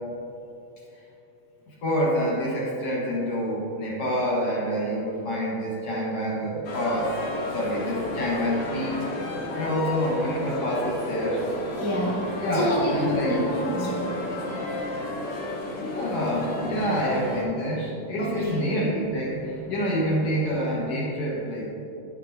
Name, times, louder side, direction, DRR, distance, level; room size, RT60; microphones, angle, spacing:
voice 1, 1.7-7.2 7.5-9.0 9.5-11.5 12.4-13.3 15.9-21.7, equal, 50° left, -5 dB, 2.4 m, -27 dB
sound 1, 6.6-17.4, left 2 dB, 70° left, 2.6 m, -32 dB
voice 2, 11.8-14.3 18.2-18.7, equal, 25° right, -7 dB, 0.5 m, -28 dB
12.0 x 8.3 x 2.8 m, 2.9 s
omnidirectional pair, 3.8 m